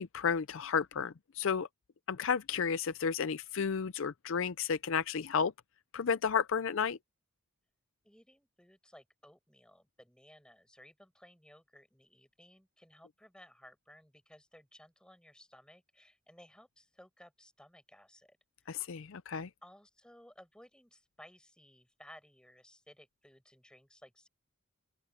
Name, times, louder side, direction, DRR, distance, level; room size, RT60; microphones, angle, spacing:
voice 1, 0.0-1.7 2.1-5.5 5.9-7.0 18.7-19.5, left 6 dB, 60° left, 0.5 m, -32 dB
voice 2, 8.0-18.4 18.7-18.9 19.6-24.3, left 1 dB, 5° left, 5.8 m, -58 dB
open air
head